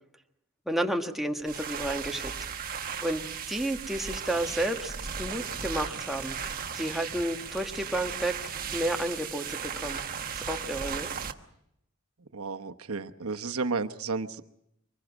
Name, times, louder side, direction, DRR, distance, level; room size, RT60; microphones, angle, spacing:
voice 1, 0.7-2.3 3.0-6.4 6.7-8.3 8.7-10.0 10.4-11.1, right 1 dB, ahead, 3 dB, 1.5 m, -31 dB
sound 1, 1.4-11.3, right 7 dB, 45° right, 1.2 m, -36 dB
voice 2, 12.2-14.4, right 4 dB, 85° right, 7 dB, 1.1 m, -32 dB
25.0 x 21.0 x 6.2 m, 0.79 s
head